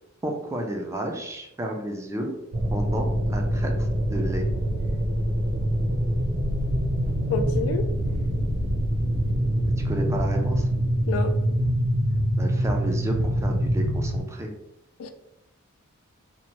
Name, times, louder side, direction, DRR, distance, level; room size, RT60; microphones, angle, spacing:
voice 1, 0.2-2.3 2.7-3.7 4.1-4.5 9.8-10.7 12.4-14.5, right 1 dB, 15° right, 2 dB, 0.3 m, -31 dB
sound 1, 2.5-14.2, equal, 75° right, 0.6 m, -25 dB
sound 2, 6.1-7.8 8.1-11.9 12.1-13.5, left 2 dB, 15° left, 0.8 m, -38 dB
voice 2, 7.3-7.9 11.1-11.3 15.0-15.1, left 4 dB, 75° left, 10 dB, 0.3 m, -28 dB
2.7 x 2.1 x 2.9 m, 0.88 s
head